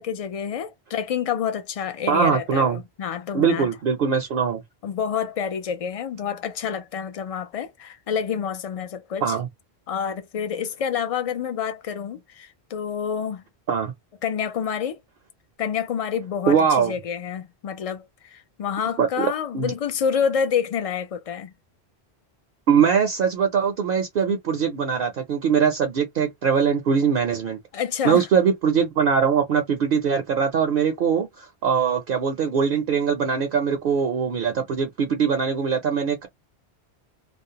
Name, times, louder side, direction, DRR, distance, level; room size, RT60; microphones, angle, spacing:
voice 1, 0.0-3.7 4.8-9.4 9.9-13.4 14.2-15.0 15.6-21.5 27.7-28.2, left 7 dB, 55° left, 0.4 m, -28 dB
voice 2, 2.1-2.8 3.3-4.6 9.2-9.5 13.7-13.9 16.5-16.9 19.0-19.3 19.5-19.7 22.7-27.6 28.0-36.3, right 6 dB, 65° right, 0.7 m, -22 dB
2.4 x 2.0 x 2.7 m
omnidirectional pair, 1.1 m